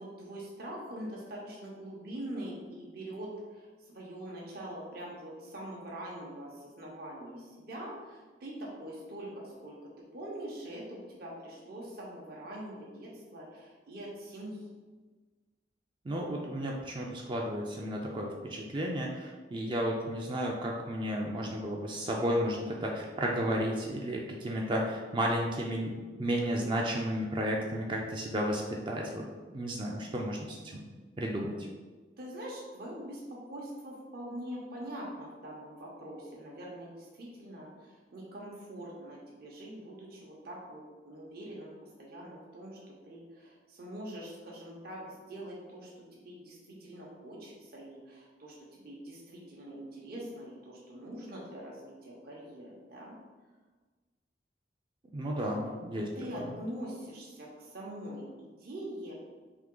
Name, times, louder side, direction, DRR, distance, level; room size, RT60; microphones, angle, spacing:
voice 1, 0.0-9.8 10.1-14.7 32.2-41.7 42.0-53.2 55.4-55.5 56.1-59.1, right 1 dB, 55° right, -4 dB, 0.8 m, -43 dB
voice 2, 16.0-31.6 55.1-56.1 56.4-56.5, equal, 25° right, -1 dB, 0.4 m, -33 dB
3.6 x 2.8 x 3.7 m, 1.3 s
head